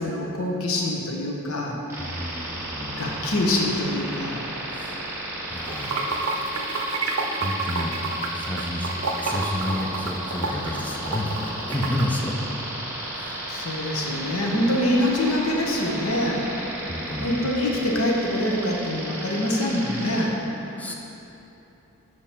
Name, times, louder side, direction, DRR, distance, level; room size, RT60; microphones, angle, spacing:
voice 1, 0.0-1.8 2.9-4.4 13.5-16.5 17.2-20.4, left 1 dB, 85° left, -1 dB, 1.0 m, -25 dB
sound 1, 1.9-20.3, right 1 dB, 15° right, 1.0 m, -34 dB
voice 2, 2.0-3.2 4.7-5.0 5.5-5.9 7.2-8.0 8.3-8.9 9.2-11.4 11.7-12.4 13.0-13.5 16.9-17.3 20.8-20.9, left 1 dB, 5° left, -1 dB, 0.5 m, -30 dB
Water / Sink (filling or washing), 5.6-12.0, right 3 dB, 80° right, 0.6 m, -29 dB
7.4 x 4.8 x 4.3 m, 3.0 s
head